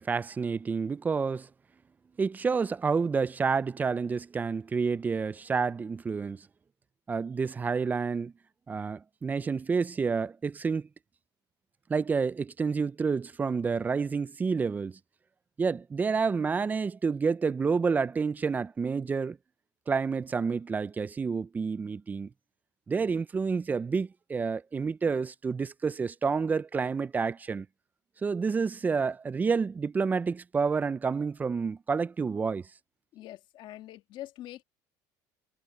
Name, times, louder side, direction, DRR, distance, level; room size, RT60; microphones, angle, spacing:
voice 1, 0.0-1.5 2.2-6.5 7.1-8.3 8.7-10.9 11.9-15.0 15.6-19.4 19.9-22.3 22.9-27.7 28.2-32.6, right 5 dB, 15° right, 0.4 m, -29 dB
voice 2, 33.1-34.6, left 14 dB, 55° left, 1.9 m, -44 dB
cardioid pair, 130°, 10 cm